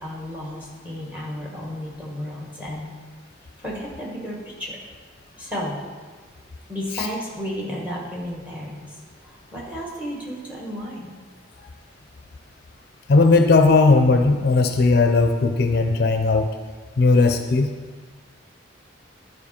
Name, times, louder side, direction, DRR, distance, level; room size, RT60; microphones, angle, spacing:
voice 1, 0.0-2.9 3.6-4.8 5.4-5.8 6.7-11.1, equal, 10° right, -3 dB, 1.6 m, -33 dB
voice 2, 13.1-16.5 17.0-17.7, left 3 dB, 55° left, 6 dB, 0.4 m, -17 dB
11.0 x 4.8 x 4.3 m, 1.5 s
head